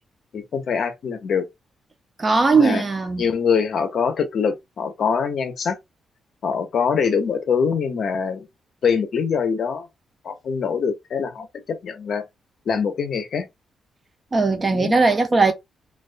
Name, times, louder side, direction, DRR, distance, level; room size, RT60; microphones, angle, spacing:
voice 1, 0.3-1.5 2.5-2.8 3.2-5.8 6.4-8.5 8.8-9.9 10.2-12.2 12.7-13.5 14.7-14.9, left 6 dB, 55° left, 0.5 m, -23 dB
voice 2, 2.2-3.3 14.3-15.5, right 3 dB, 25° right, 0.4 m, -18 dB
2.2 x 2.2 x 2.4 m
wide cardioid pair, 155°, 0 cm